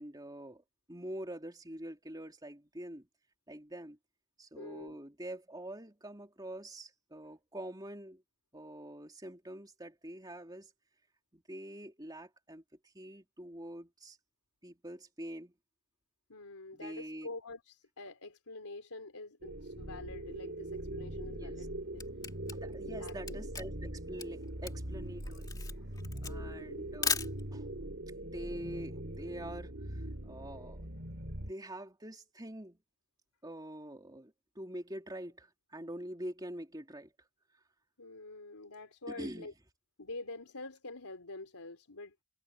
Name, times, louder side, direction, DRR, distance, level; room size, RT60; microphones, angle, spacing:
voice 1, 0.0-3.1 3.5-4.0 4.4-8.2 8.5-10.7 11.3-14.2 14.6-15.5 16.7-17.3 21.3-21.7 22.5-25.6 26.2-27.2 27.5-27.7 28.2-30.9 31.4-32.8 33.4-37.1 39.1-39.5, right 1 dB, 20° right, 3.3 m, -45 dB
voice 2, 4.5-5.0 16.3-22.0 22.8-23.3 25.7-25.9 26.3-26.9 38.0-39.5 40.0-42.2, left 2 dB, 90° left, 3.7 m, -47 dB
sound 1, 19.4-31.5, right 1 dB, 50° right, 4.5 m, -42 dB
Camera, 21.5-27.8, left 5 dB, 15° left, 2.9 m, -38 dB
head